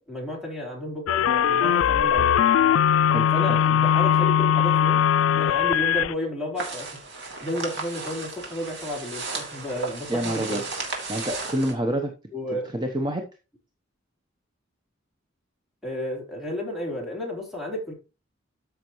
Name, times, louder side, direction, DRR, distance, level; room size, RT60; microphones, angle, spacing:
voice 1, 0.0-2.3 3.3-5.1 5.4-6.9 7.2-10.6 12.3-12.7 15.8-17.9, left 1 dB, ahead, -2 dB, 3.9 m, -32 dB
sound 1, 1.1-6.1, left 9 dB, 85° left, 0.3 m, -20 dB
sound 2, 6.6-11.7, right 3 dB, 60° right, 2.7 m, -34 dB
voice 2, 10.1-10.6 11.1-12.1 12.7-13.2, right 1 dB, 20° right, 4 dB, 0.9 m, -27 dB
13.5 x 5.9 x 3.1 m, 0.30 s
head